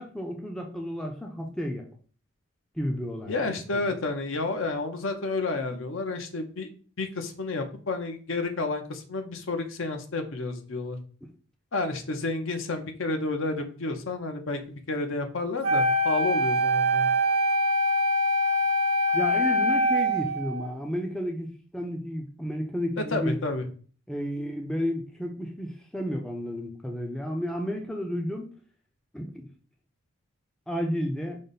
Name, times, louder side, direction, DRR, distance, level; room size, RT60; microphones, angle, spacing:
voice 1, 0.0-1.8 2.8-3.9 19.1-23.4 24.1-28.5 29.1-29.5 30.7-31.4, equal, 5° left, 1 dB, 0.4 m, -32 dB
voice 2, 3.3-6.7 7.0-11.0 11.7-17.1 23.1-23.6, left 3 dB, 70° left, 6 dB, 0.7 m, -30 dB
Wind instrument woodwind instrument, 15.6-20.7, equal, 75° right, 0.6 m, -24 dB
5.1 x 2.1 x 3.9 m, 0.41 s
head